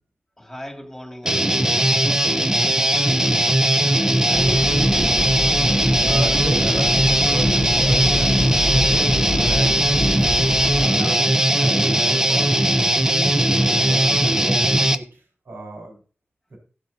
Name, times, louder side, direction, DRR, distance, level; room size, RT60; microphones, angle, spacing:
voice 1, 0.4-3.2, left 1 dB, 5° left, 2.2 m, -40 dB
Guitar, 1.2-14.9, right 1 dB, 15° right, 0.7 m, -19 dB
voice 2, 4.2-5.2 6.0-9.7 10.7-12.6 13.1-16.0 16.5-16.6, right 1 dB, 75° right, 4.6 m, -32 dB
sound 1, 4.3-10.9, left 3 dB, 45° left, 0.6 m, -28 dB
16.5 x 7.4 x 2.7 m
wide cardioid pair, 110°, 4 cm